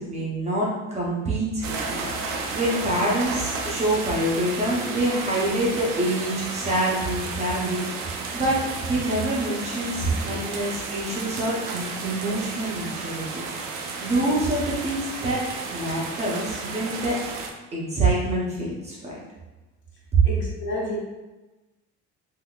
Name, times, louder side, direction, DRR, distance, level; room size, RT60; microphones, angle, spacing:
voice 1, 0.0-13.4 14.0-15.4 15.7-17.2 17.7-19.1 20.1-20.2, right 1 dB, 20° right, -5 dB, 0.6 m, -26 dB
sound 1, 1.6-17.5, right 4 dB, 80° right, 0.6 m, -33 dB
voice 2, 20.2-21.0, equal, 40° left, -3 dB, 0.8 m, -29 dB
3.7 x 2.6 x 2.3 m, 1.1 s
cardioid pair, 155°, 30 cm